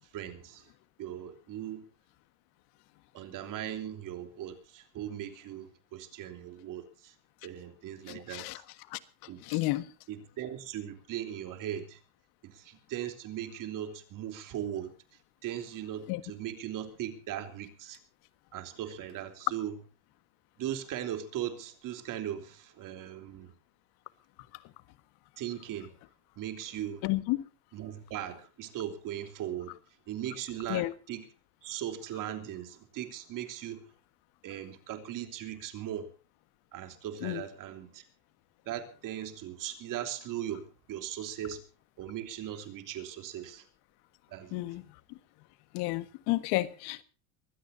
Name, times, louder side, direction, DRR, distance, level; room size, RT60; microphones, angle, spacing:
voice 1, 0.1-0.7 1.0-1.9 3.1-7.1 7.4-8.6 9.3-9.4 10.1-12.0 12.4-14.9 15.4-18.0 18.5-19.7 20.6-23.5 25.4-25.9 26.4-27.0 27.7-29.8 30.1-31.3 31.6-33.9 34.4-36.1 36.7-38.0 38.6-41.6 42.0-43.6 44.3-44.6, right 11 dB, 55° right, 3.4 m, -39 dB
voice 2, 8.1-8.6 8.9-9.0 9.4-9.9 16.1-16.2 27.0-27.4 30.7-30.9 37.2-37.4 44.5-44.8 45.7-47.0, left 19 dB, 75° left, 1.6 m, -31 dB
23.5 x 16.5 x 2.7 m
cardioid pair, 135°, 39 cm